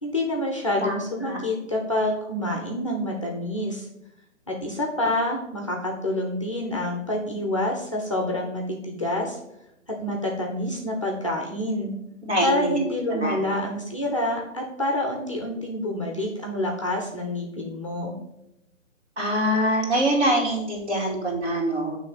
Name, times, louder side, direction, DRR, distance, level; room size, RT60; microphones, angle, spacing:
voice 1, 0.0-3.9 4.5-9.4 9.9-12.0 12.4-18.2, left 1 dB, 25° left, 1 dB, 0.6 m, -27 dB
voice 2, 12.2-12.8 13.1-13.4 19.2-22.0, right 1 dB, 55° right, -2 dB, 2.6 m, -24 dB
7.6 x 3.2 x 5.6 m, 0.88 s
figure-of-eight pair, 155°, 40 cm